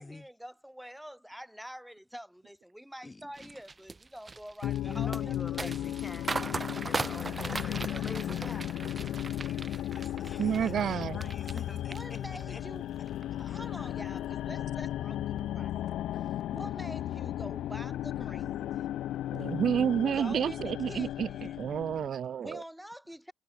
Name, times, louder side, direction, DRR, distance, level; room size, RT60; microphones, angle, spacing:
voice 1, 0.0-5.7 11.9-12.8 13.3-15.7 16.5-18.7 20.1-21.6 22.4-23.3, equal, ahead, 1.1 m, -46 dB
voice 2, 3.0-3.5 4.8-8.7 9.5-12.6, left 3 dB, 20° left, 0.5 m, -46 dB
sound 1, 3.4-11.6 11.9-12.6 13.0-13.2, right 3 dB, 25° right, 0.9 m, -38 dB
sound 2, 4.6-22.1, left 12 dB, 80° left, 0.7 m, -35 dB
voice 3, 10.4-11.2 19.3-21.3 21.6-22.6, right 9 dB, 60° right, 0.4 m, -29 dB
sound 3, 15.1-16.8 17.1-20.4, left 6 dB, 40° left, 4.4 m, -57 dB
cardioid pair, 90°, 0 cm